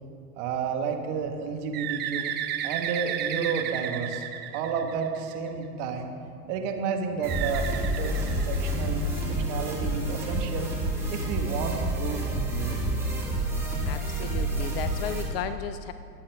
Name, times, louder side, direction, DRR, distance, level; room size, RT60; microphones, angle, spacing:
voice 1, 0.4-4.3 4.5-6.1 6.5-10.7 11.1-12.9, right 5 dB, 45° right, 4 dB, 1.5 m, -31 dB
Bird, 1.7-5.5 7.2-9.0, right 10 dB, 20° right, 0.6 m, -33 dB
sound 1, 7.2-15.2, right 1 dB, 5° right, 2.7 m, -29 dB
voice 2, 13.8-15.9, left 9 dB, 40° left, 11 dB, 0.5 m, -34 dB
19.0 x 7.8 x 3.5 m, 2.4 s
hypercardioid pair, 110°, 48 cm